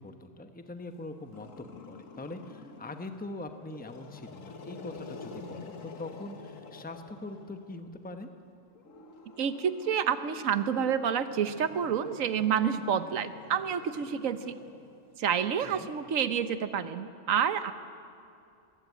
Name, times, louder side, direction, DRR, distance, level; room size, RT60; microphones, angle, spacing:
voice 1, 0.0-8.3 15.6-15.9, left 2 dB, 10° left, 6 dB, 0.9 m, -42 dB
Growling, 1.3-3.1 3.6-7.8 8.7-15.3, left 4 dB, 80° left, 1.8 m, -48 dB
voice 2, 9.4-14.5 15.2-17.7, right 8 dB, 85° right, 11 dB, 1.3 m, -29 dB
22.0 x 16.0 x 8.4 m, 2.5 s
omnidirectional pair, 1.3 m